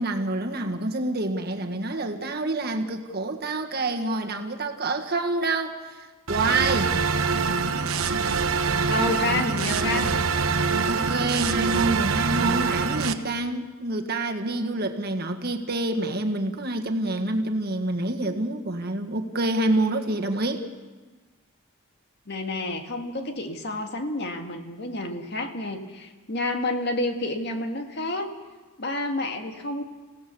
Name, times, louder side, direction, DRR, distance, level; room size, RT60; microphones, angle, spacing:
voice 1, 0.0-6.9 10.8-20.7, right 2 dB, 50° right, 4 dB, 1.7 m, -27 dB
sound 1, 6.3-13.1, right 4 dB, 85° right, 1.1 m, -24 dB
voice 2, 8.9-10.2 22.3-28.3 28.8-29.8, left 2 dB, 55° left, 5 dB, 1.9 m, -29 dB
26.5 x 16.5 x 7.0 m, 1.3 s
head